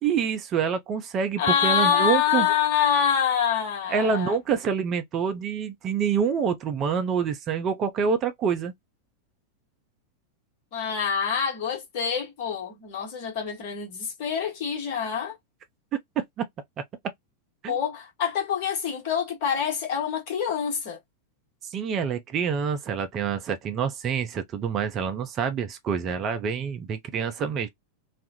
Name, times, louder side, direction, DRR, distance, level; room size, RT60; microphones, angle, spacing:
voice 1, 0.0-2.5 3.9-8.7 16.2-16.4 17.6-17.7 21.7-27.7, right 6 dB, 30° right, 0.5 m, -26 dB
voice 2, 1.4-4.3 10.7-15.4 17.7-21.0, left 8 dB, 45° left, 1.1 m, -26 dB
2.4 x 2.0 x 2.8 m
figure-of-eight pair, 90°, 0 cm